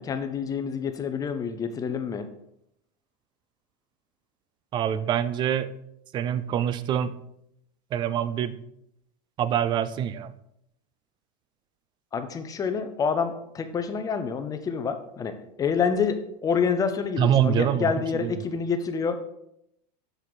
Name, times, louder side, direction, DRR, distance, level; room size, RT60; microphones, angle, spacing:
voice 1, 0.0-2.3 12.1-19.2, left 6 dB, 15° left, 8 dB, 0.6 m, -27 dB
voice 2, 4.7-5.7 6.1-7.2 7.9-8.6 9.4-10.3 17.2-17.9 18.2-18.3, right 9 dB, 20° right, 15 dB, 0.3 m, -25 dB
7.3 x 6.5 x 4.0 m, 0.78 s
supercardioid pair, 150°, 21 cm